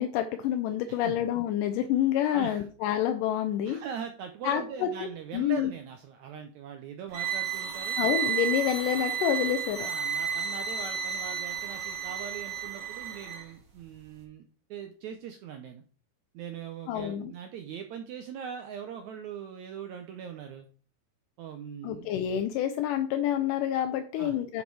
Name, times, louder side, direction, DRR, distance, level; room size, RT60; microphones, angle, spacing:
voice 1, 0.0-3.8 4.4-5.1 5.3-5.7 8.0-9.9 16.9-17.3 21.8-24.6, left 10 dB, 80° left, 6 dB, 2.0 m, -28 dB
voice 2, 2.3-2.6 3.7-8.0 9.8-14.4 14.7-15.8 16.3-20.7 21.4-22.1 24.2-24.4, right 8 dB, 85° right, 5 dB, 1.6 m, -41 dB
sound 1, 7.1-13.5, right 8 dB, 50° right, 2.0 m, -32 dB
10.0 x 4.4 x 4.6 m, 0.40 s
omnidirectional pair, 4.3 m